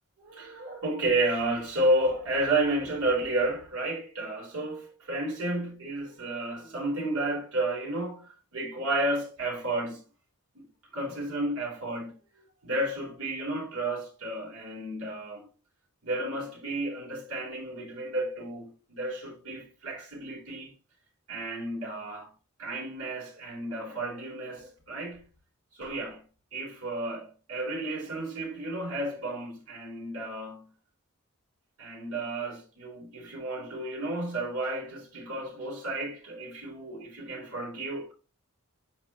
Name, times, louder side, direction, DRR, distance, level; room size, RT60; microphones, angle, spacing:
voice 1, 0.2-10.0 10.5-10.6 10.9-12.2 12.6-15.5 16.0-20.7 21.3-22.3 22.6-25.2 25.7-26.2 26.5-30.7 31.8-38.1, right 1 dB, 80° right, 3.8 m, -32 dB
8.6 x 5.2 x 3.0 m
head